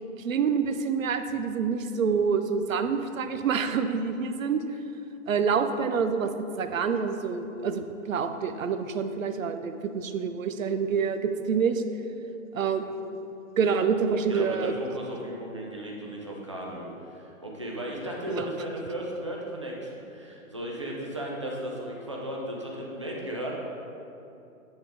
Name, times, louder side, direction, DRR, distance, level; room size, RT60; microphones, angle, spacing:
voice 1, 0.2-4.6 5.3-6.3 6.6-11.8 12.5-13.2 13.6-14.7 18.3-18.4, right 6 dB, 70° right, 8 dB, 0.7 m, -27 dB
voice 2, 13.8-23.5, right 1 dB, 25° right, -3 dB, 0.5 m, -35 dB
9.5 x 3.8 x 4.9 m, 2.7 s
hypercardioid pair, 175°, 41 cm